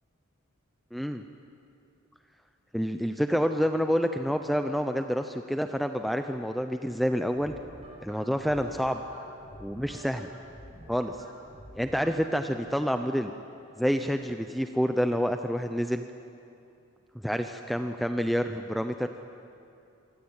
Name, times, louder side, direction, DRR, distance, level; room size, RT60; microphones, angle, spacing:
voice 1, 0.9-1.2 2.7-7.5 8.0-9.0 9.6-10.3 10.9-11.2 11.8-13.3 13.8-16.0 17.2-19.1, equal, ahead, 6 dB, 0.7 m, -28 dB
sound 1, 7.4-12.5, right 1 dB, 30° right, 7.6 m, -48 dB
27.5 x 23.5 x 9.0 m, 2.7 s
head